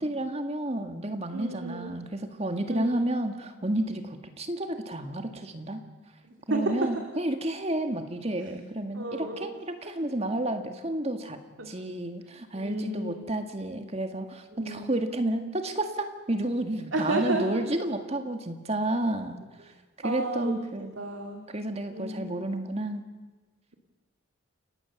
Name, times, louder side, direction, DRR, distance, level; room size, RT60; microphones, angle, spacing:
voice 1, 0.0-5.8 6.5-11.4 11.7-19.4 20.0-20.9 21.5-23.0, right 1 dB, 30° right, 6 dB, 1.8 m, -31 dB
voice 2, 1.3-1.9 2.7-3.0 6.2-6.9 8.9-9.5 11.6-11.7 12.5-13.3 14.6-14.8 16.9-17.7 20.0-21.5 21.9-22.4, right 2 dB, 65° right, 3 dB, 2.2 m, -32 dB
29.5 x 17.0 x 7.2 m, 1.3 s
head